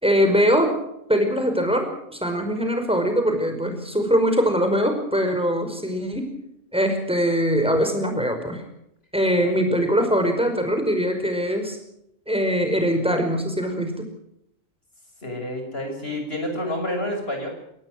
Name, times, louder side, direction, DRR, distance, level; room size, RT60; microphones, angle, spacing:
voice 1, 0.0-0.7 1.1-6.3 6.7-8.6 9.1-11.8 12.3-14.1, equal, 5° right, 5 dB, 5.2 m, -22 dB
voice 2, 15.2-17.5, left 1 dB, 50° left, 4 dB, 6.6 m, -29 dB
24.0 x 18.5 x 6.4 m, 0.77 s
omnidirectional pair, 1.3 m